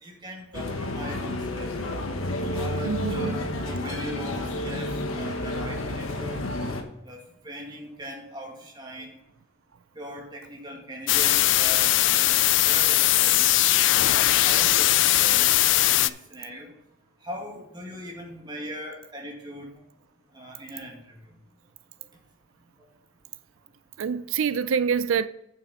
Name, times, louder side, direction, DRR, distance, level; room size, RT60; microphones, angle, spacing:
voice 1, 0.0-1.8 2.5-4.9 5.2-6.4 7.1-7.2 7.4-9.2 10.0-12.4 12.6-13.5 14.1-15.6 15.9-16.7 17.2-19.8 20.3-21.1, equal, 20° right, 2.0 m, -40 dB
sound 1, 0.5-6.8, left 1 dB, 80° left, 1.2 m, -30 dB
voice 2, 2.9-3.4 24.0-25.3, right 6 dB, 75° right, 0.4 m, -26 dB
sound 2, 11.1-16.1, left 15 dB, 60° left, 0.3 m, -20 dB
8.7 x 7.0 x 4.2 m
head